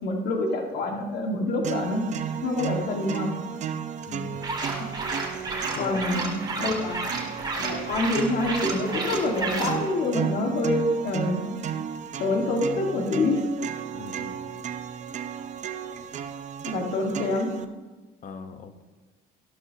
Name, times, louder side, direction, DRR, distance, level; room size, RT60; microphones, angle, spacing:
voice 1, 0.0-2.0 2.4-3.4 4.8-4.9 5.8-7.2 7.6-11.4 12.2-13.5 16.6-17.5, left 2 dB, 70° left, 1 dB, 1.8 m, -26 dB
sound 1, 1.6-17.6, right 8 dB, 45° right, 0.7 m, -34 dB
voice 2, 4.1-4.4 5.7-6.0 6.6-6.8 13.9-14.4 18.2-18.8, left 6 dB, 50° left, 7 dB, 1.0 m, -39 dB
sound 2, 4.4-9.8, right 3 dB, 25° right, 2.1 m, -32 dB
13.5 x 12.0 x 2.9 m, 1.3 s
cardioid pair, 110°, 17 cm